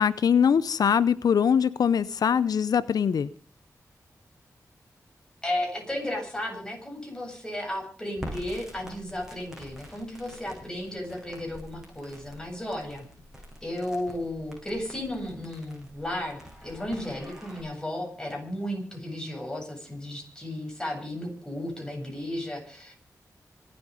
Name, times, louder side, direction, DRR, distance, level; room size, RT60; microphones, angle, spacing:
voice 1, 0.0-3.3, left 7 dB, 90° left, 17 dB, 0.6 m, -22 dB
voice 2, 5.4-13.1 13.6-23.0, left 1 dB, 10° left, 1 dB, 7.9 m, -34 dB
Crackle, 8.1-17.6, equal, 10° right, 7.9 m, -46 dB
26.0 x 8.7 x 5.4 m, 0.41 s
wide cardioid pair, 100°, 6 cm